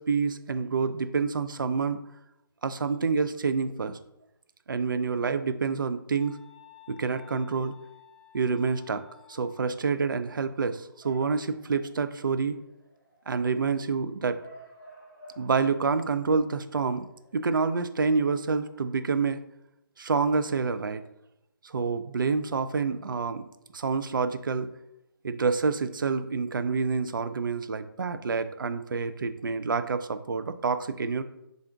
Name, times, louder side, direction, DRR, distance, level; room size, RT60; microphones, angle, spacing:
voice 1, 0.0-2.0 2.6-4.0 4.7-6.4 6.9-7.7 8.3-12.6 13.3-14.4 15.4-17.1 17.3-19.4 20.0-21.0 21.6-23.5 23.7-24.7 25.2-31.2, right 5 dB, 60° right, 10 dB, 0.4 m, -28 dB
sound 1, 6.1-9.7, left 13 dB, 15° left, 0.4 m, -54 dB
Bark / Motor vehicle (road) / Siren, 10.3-19.0, right 1 dB, 20° right, 1.5 m, -55 dB
3.9 x 3.4 x 3.5 m, 0.84 s
figure-of-eight pair, 150°, 12 cm